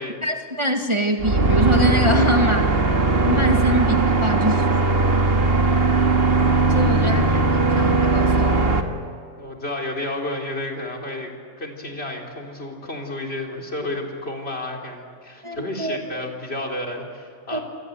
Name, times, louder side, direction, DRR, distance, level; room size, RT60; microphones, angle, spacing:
voice 1, 0.2-2.8 3.2-4.7 6.7-7.4 7.8-8.8 15.4-16.0 17.5-17.6, equal, 20° right, 3 dB, 1.8 m, -24 dB
sound 1, 1.2-8.8, right 3 dB, 45° right, 2.0 m, -19 dB
voice 2, 9.4-11.3 11.6-17.6, left 1 dB, 50° left, 4 dB, 4.0 m, -31 dB
28.0 x 25.5 x 8.1 m, 2.3 s
omnidirectional pair, 1.4 m